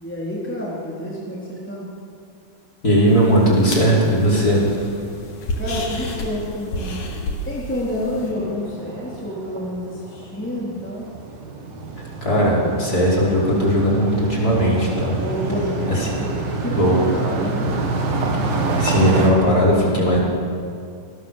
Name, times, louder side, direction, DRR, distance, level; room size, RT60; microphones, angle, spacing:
voice 1, 0.0-1.9 5.6-7.0 7.4-11.0 15.1-16.3 16.6-17.7, left 1 dB, 5° left, -5 dB, 3.4 m, -28 dB
voice 2, 2.8-4.6 12.2-15.1 15.9-16.1 16.8-17.0 18.8-20.2, equal, 25° left, -4 dB, 5.6 m, -18 dB
sound 1, 3.1-8.3, left 1 dB, 65° left, 4.3 m, -31 dB
sound 2, 8.2-19.3, right 3 dB, 85° right, 4.5 m, -27 dB
27.0 x 20.0 x 7.5 m, 2.4 s
omnidirectional pair, 4.0 m